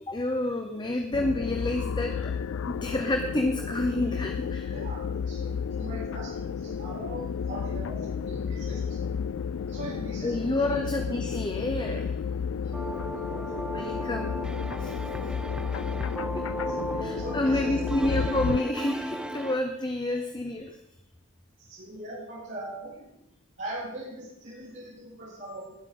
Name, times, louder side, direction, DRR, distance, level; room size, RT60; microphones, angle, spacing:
voice 1, 0.1-2.3 2.7-4.8 10.2-12.1 13.7-14.4 14.8-14.9 17.0-20.8, left 1 dB, 20° left, 4 dB, 0.9 m, -29 dB
sound 1, 1.1-18.6, left 6 dB, 75° left, 0.4 m, -32 dB
voice 2, 4.7-8.0 8.2-9.2 9.7-10.9 13.0-14.0 16.2-16.4 16.7-16.9 17.2-17.8 20.1-20.2 21.6-23.1 23.6-25.8, right 1 dB, 65° right, -9 dB, 5.6 m, -41 dB
sound 2, 12.7-19.6, equal, 5° right, 0.7 m, -36 dB
20.0 x 8.1 x 3.9 m, 0.88 s
head